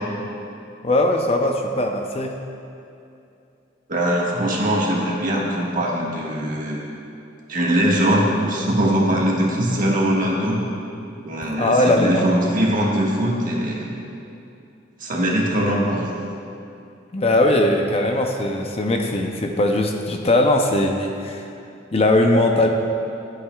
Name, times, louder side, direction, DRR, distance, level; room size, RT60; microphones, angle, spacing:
voice 1, 0.8-2.4 11.5-12.6 17.1-21.5 21.9-22.7, left 1 dB, 30° left, 3 dB, 0.5 m, -20 dB
voice 2, 3.9-6.8 7.5-10.6 11.2-14.0 15.0-16.0, right 1 dB, 45° right, -4 dB, 1.5 m, -21 dB
13.0 x 9.0 x 2.3 m, 2.6 s
head